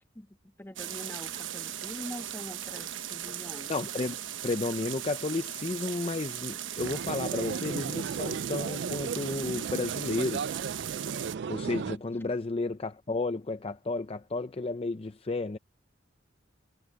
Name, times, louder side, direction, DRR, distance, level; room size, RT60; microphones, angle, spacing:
voice 1, 0.1-3.7, left 1 dB, 10° left, 1.3 m, -44 dB
sound 1, 0.8-11.4, right 11 dB, 85° right, 1.1 m, -38 dB
voice 2, 3.7-4.2 4.4-10.4 11.5-15.6, left 3 dB, 30° left, 0.5 m, -32 dB
sound 2, 6.8-12.0, right 6 dB, 60° right, 0.4 m, -35 dB
head